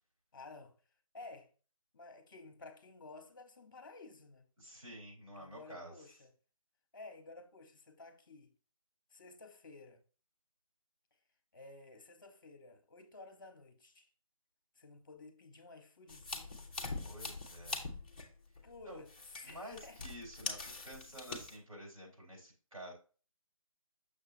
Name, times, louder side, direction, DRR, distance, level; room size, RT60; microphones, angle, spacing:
voice 1, 0.3-0.7 1.1-1.5 1.9-4.5 5.3-6.3 6.9-8.5 9.1-10.0 11.5-14.1 14.8-16.7 18.2-18.3 18.6-20.0, left 3 dB, 35° left, 0.9 m, -53 dB
voice 2, 4.6-5.9 17.1-17.8 18.9-19.0 19.4-22.9, equal, 70° right, 3.8 m, -50 dB
sound 1, 16.1-21.6, left 3 dB, 15° left, 0.5 m, -44 dB
6.5 x 6.4 x 2.7 m
figure-of-eight pair, 155°, 18 cm